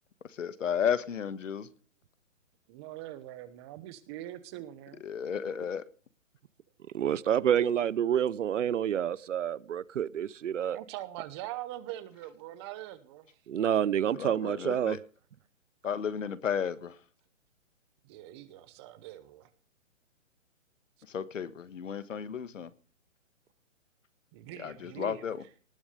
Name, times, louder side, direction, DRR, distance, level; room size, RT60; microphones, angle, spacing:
voice 1, 0.4-1.7 5.0-5.8 14.1-15.0 15.8-17.0 21.1-22.7 24.6-25.4, left 7 dB, 70° left, 1.5 m, -33 dB
voice 2, 2.7-5.0 10.7-13.3 18.0-19.5 24.3-25.3, right 14 dB, 20° right, 1.0 m, -43 dB
voice 3, 6.9-10.8 13.5-15.0, right 9 dB, 65° right, 0.8 m, -28 dB
19.0 x 7.2 x 5.1 m
hypercardioid pair, 150°, 39 cm